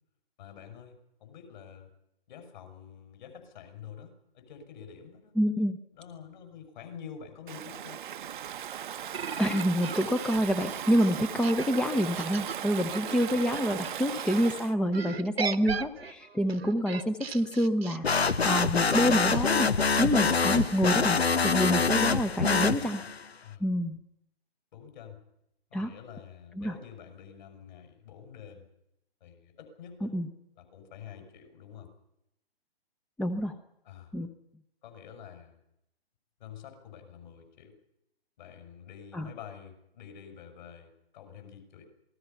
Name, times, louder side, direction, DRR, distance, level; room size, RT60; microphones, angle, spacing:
voice 1, 0.4-1.9 2.3-5.3 5.9-8.0 23.4-23.7 24.7-25.2 25.7-28.7 29.2-30.1 30.5-31.9 33.8-34.1 34.8-35.6 36.4-37.7 38.4-41.8, left 8 dB, 50° left, 6 dB, 6.7 m, -48 dB
voice 2, 5.4-5.8 9.4-21.2 21.4-23.0 23.6-24.0 25.7-25.9 26.6-26.7 30.0-30.3 33.2-33.6 34.1-34.3 39.1-39.3, equal, 5° left, 10 dB, 0.8 m, -27 dB
Stream / Ocean, 7.5-14.7, right 10 dB, 55° right, 0.9 m, -38 dB
sound 1, 9.1-14.4 14.9-20.8, right 6 dB, 80° right, 1.4 m, -39 dB
sound 2, 18.0-23.2, left 5 dB, 85° left, 1.1 m, -25 dB
27.0 x 20.5 x 5.7 m, 0.81 s
figure-of-eight pair, 130°, 31 cm